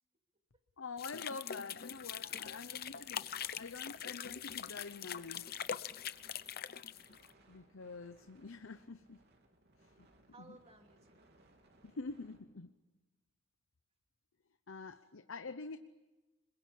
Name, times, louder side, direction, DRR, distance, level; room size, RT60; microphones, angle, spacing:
voice 1, 0.8-3.3 3.6-5.4 7.5-9.2 9.8-10.1 10.4-10.6 11.8-12.7 14.7-15.8, left 4 dB, 90° left, 11 dB, 0.8 m, -46 dB
sound 1, 1.0-7.3, left 9 dB, 50° left, 0.8 m, -43 dB
Wind Car, 1.8-12.4, right 1 dB, 55° right, 3.4 m, -67 dB
voice 2, 2.3-3.1 10.0-11.3 15.0-15.1, right 2 dB, 30° right, 3 dB, 2.9 m, -61 dB
26.0 x 22.0 x 8.6 m, 1.2 s
head